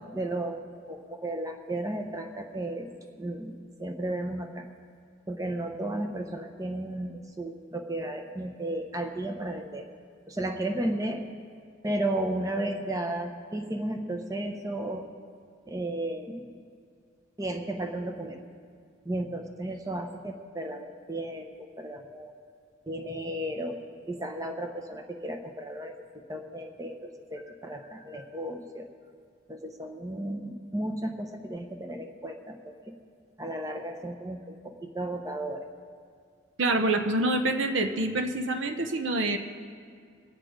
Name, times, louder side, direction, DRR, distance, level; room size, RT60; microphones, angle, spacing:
voice 1, 0.1-0.6 0.9-2.9 3.2-4.6 5.3-9.9 10.3-11.2 11.8-15.1 15.7-16.6 17.4-18.4 19.0-22.3 22.9-23.8 24.1-25.9 26.3-28.9 29.5-32.7 33.4-35.7, right 1 dB, 15° right, 4 dB, 0.8 m, -34 dB
voice 2, 36.6-39.4, right 2 dB, 70° right, 6 dB, 0.9 m, -26 dB
21.0 x 8.2 x 5.0 m, 2.2 s
head